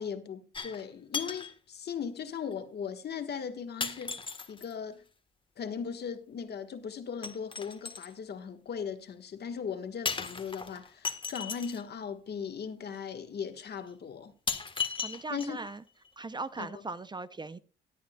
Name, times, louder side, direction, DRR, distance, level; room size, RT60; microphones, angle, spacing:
voice 1, 0.0-5.0 5.6-14.3 15.3-15.6 16.6-16.8, left 7 dB, 55° left, 1.4 m, -38 dB
sound 1, 0.5-0.9 1.1-1.5 2.5-2.6 3.8-4.7 7.2-8.1 10.1-11.8 12.9-13.0 13.6-13.7 14.5-15.7 16.1-16.2, left 5 dB, 25° left, 1.4 m, -36 dB
voice 2, 15.0-15.8 16.2-17.6, right 3 dB, 20° right, 0.6 m, -39 dB
19.5 x 8.7 x 2.3 m
cardioid pair, 90°, 20 cm